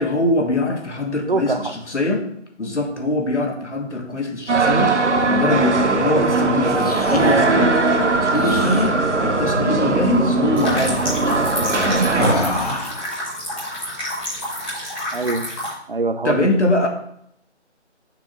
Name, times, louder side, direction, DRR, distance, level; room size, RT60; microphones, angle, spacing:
voice 1, 0.0-2.3 2.6-5.0 5.3-12.8 16.2-16.9, left 2 dB, 75° left, 3 dB, 1.5 m, -23 dB
voice 2, 1.3-1.7 15.1-15.5 15.9-16.5, right 3 dB, 50° right, 10 dB, 0.6 m, -23 dB
sound 1, 4.5-12.3, right 3 dB, 75° right, 1.0 m, -19 dB
sound 2, 6.5-7.4 8.3-8.9 9.5-9.8 10.0-10.2 10.5-10.8 12.1-13.1, left 1 dB, 35° left, 0.6 m, -27 dB
sound 3, 10.6-15.7, left 1 dB, 10° left, 1.2 m, -28 dB
5.9 x 3.6 x 5.9 m, 0.72 s
figure-of-eight pair, 160°, 36 cm